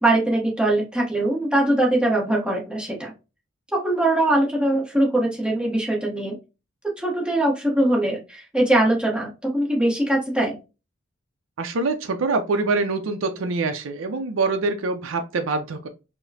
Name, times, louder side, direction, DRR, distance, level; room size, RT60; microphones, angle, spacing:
voice 1, 0.0-3.1 3.7-6.3 7.0-10.6, right 1 dB, 5° right, -3 dB, 0.9 m, -22 dB
voice 2, 11.6-15.9, right 3 dB, 80° right, 7 dB, 0.5 m, -25 dB
4.7 x 2.1 x 2.7 m, 0.29 s
head